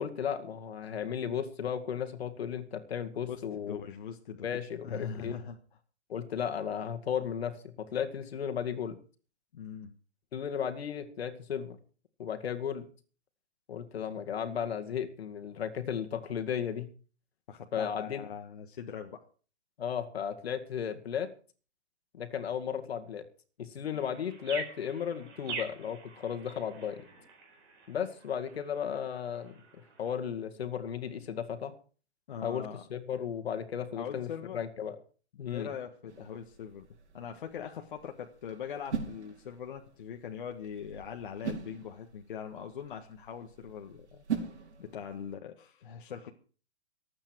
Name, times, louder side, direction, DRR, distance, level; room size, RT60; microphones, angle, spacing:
voice 1, 0.0-3.8 4.4-5.4 6.1-9.0 10.3-11.8 12.2-12.9 13.7-16.9 17.7-18.2 19.8-21.3 22.1-23.2 23.6-27.0 27.9-29.6 30.0-31.7 32.4-35.0 35.4-35.7, left 8 dB, 65° left, 7 dB, 2.2 m, -35 dB
voice 2, 3.3-4.5 4.8-5.6 9.5-9.9 17.5-19.2 32.3-32.8 33.9-34.6 35.5-36.9 37.1-44.2 44.8-46.3, left 7 dB, 50° left, 3 dB, 1.5 m, -41 dB
sound 1, 23.9-30.2, right 4 dB, 25° right, 4.1 m, -45 dB
sound 2, 36.1-45.3, right 6 dB, 85° right, 5.1 m, -42 dB
24.0 x 8.8 x 4.7 m, 0.39 s
hypercardioid pair, 180°, 33 cm